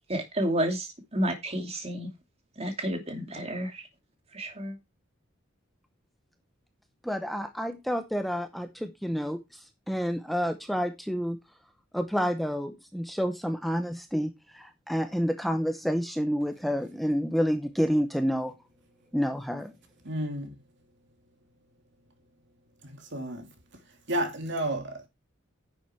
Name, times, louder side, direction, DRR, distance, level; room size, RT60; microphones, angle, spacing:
voice 1, 0.0-2.1 2.6-3.9 4.3-4.8, right 1 dB, 30° right, 2.6 m, -31 dB
voice 2, 7.0-11.4 11.9-18.5 19.1-19.7, equal, ahead, 0.7 m, -29 dB
voice 3, 20.0-20.6 22.8-23.5 24.1-25.1, right 1 dB, 60° right, 2.8 m, -32 dB
10.5 x 7.1 x 4.5 m
head